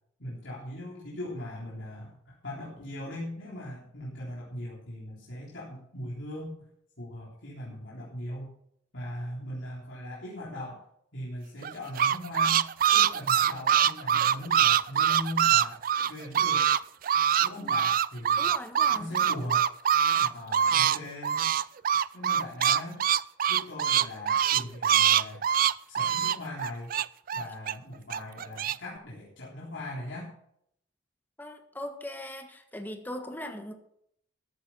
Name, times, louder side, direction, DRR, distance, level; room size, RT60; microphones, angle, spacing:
voice 1, 0.2-6.5 7.0-8.6 8.9-10.8 11.1-15.8 16.1-16.7 17.4-18.5 18.9-19.7 20.2-21.5 22.1-23.0 23.5-25.5 25.9-26.9 27.3-30.3, left 1 dB, 75° left, -6 dB, 3.6 m, -39 dB
sound 1, 11.6-16.8 17.0-21.0 21.2-27.7 28.1-28.7, right 9 dB, 50° right, 0.4 m, -24 dB
voice 2, 18.4-19.1 31.4-33.7, left 1 dB, 10° left, 5 dB, 1.4 m, -39 dB
14.0 x 8.7 x 5.6 m, 0.71 s
head